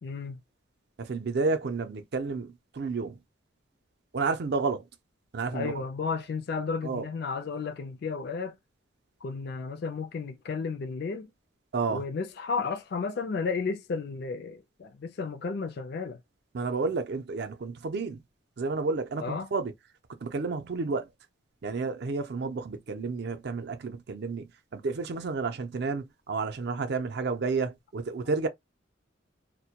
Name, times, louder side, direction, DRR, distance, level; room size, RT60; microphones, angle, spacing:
voice 1, 0.0-0.4 5.5-8.6 9.2-11.3 11.9-16.2 19.2-19.5, left 4 dB, 55° left, 0.4 m, -33 dB
voice 2, 1.0-3.2 4.1-4.9 5.3-5.8 6.8-7.1 11.7-12.0 16.5-18.2 18.6-19.7 20.2-21.1 21.6-28.5, right 4 dB, 55° right, 0.4 m, -31 dB
2.1 x 2.1 x 2.7 m
head